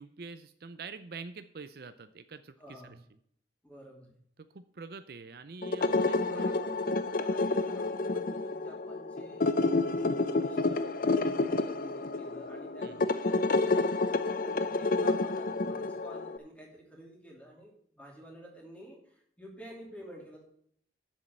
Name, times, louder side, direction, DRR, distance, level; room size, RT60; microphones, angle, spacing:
voice 1, 0.0-2.9 4.4-6.6 12.8-13.1, right 4 dB, 55° right, 11 dB, 0.5 m, -46 dB
voice 2, 2.6-3.0 3.6-4.2 5.8-9.5 9.9-13.4 13.8-13.9 14.4-20.4, equal, 5° left, -1 dB, 2.5 m, -50 dB
sound 1, 5.6-16.4, left 3 dB, 50° left, 0.6 m, -29 dB
7.3 x 6.4 x 8.0 m, 0.66 s
head